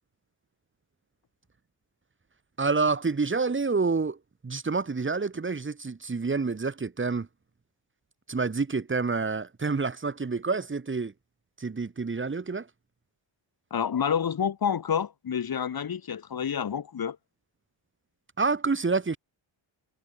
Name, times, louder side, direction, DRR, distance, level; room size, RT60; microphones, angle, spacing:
voice 1, 2.6-4.2 4.4-7.3 8.3-11.1 11.6-12.7 18.4-19.2, right 4 dB, 25° right, 6.8 m, -28 dB
voice 2, 13.7-17.2, left 8 dB, 50° left, 5.0 m, -28 dB
wide cardioid pair, 165°, 47 cm